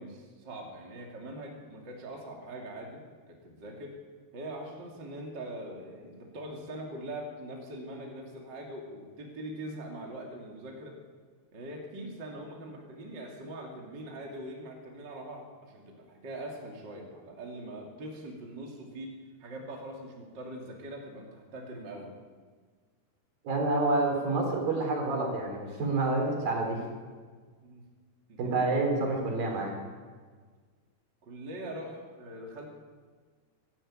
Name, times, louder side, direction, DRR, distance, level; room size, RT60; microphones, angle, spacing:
voice 1, 0.0-3.0 3.3-4.0 4.3-11.0 11.5-22.1 27.6-27.8 28.3-28.6 31.2-32.7, right 1 dB, 30° right, 0 dB, 2.9 m, -42 dB
voice 2, 23.4-26.9 28.4-29.7, right 2 dB, 60° right, 1 dB, 5.5 m, -28 dB
23.5 x 13.5 x 9.0 m, 1.5 s
omnidirectional pair, 4.7 m